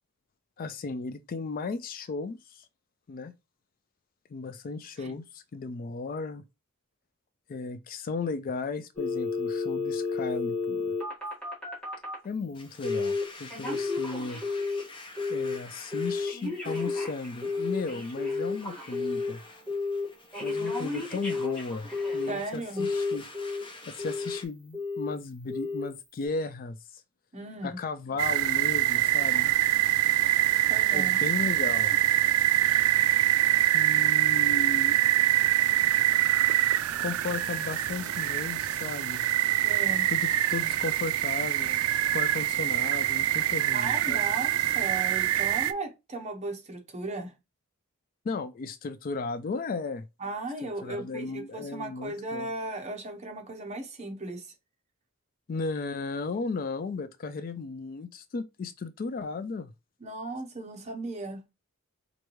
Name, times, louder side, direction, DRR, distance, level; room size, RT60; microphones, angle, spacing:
voice 1, 0.6-2.7 3.1-3.3 4.3-6.4 7.5-11.0 12.2-14.4 15.3-19.4 20.4-23.2 23.9-27.0 27.6-29.5 30.9-32.0 33.7-35.0 37.0-39.2 40.1-41.8 42.1-44.2 48.2-50.1 50.8-52.5 55.5-59.7, left 4 dB, 40° left, 0.3 m, -35 dB
Telephone, 9.0-12.2 12.8-13.2 13.5-14.9 15.2-15.6 15.9-19.3 19.7-20.1 20.3-22.4 22.8-23.6 24.0-24.4 24.7-25.1 25.5-25.9 26.2-26.3, left 4 dB, 5° left, 1.7 m, -31 dB
Domestic sounds home sounds, 12.5-24.4, left 2 dB, 25° left, 0.7 m, -48 dB
voice 2, 22.3-22.9 27.3-27.8 30.7-31.2 39.6-40.1 43.7-47.3 50.2-54.5 60.0-61.4, right 2 dB, 30° right, 0.9 m, -36 dB
sound 1, 28.2-45.7, right 13 dB, 70° right, 0.3 m, -25 dB
4.6 x 2.5 x 3.1 m
head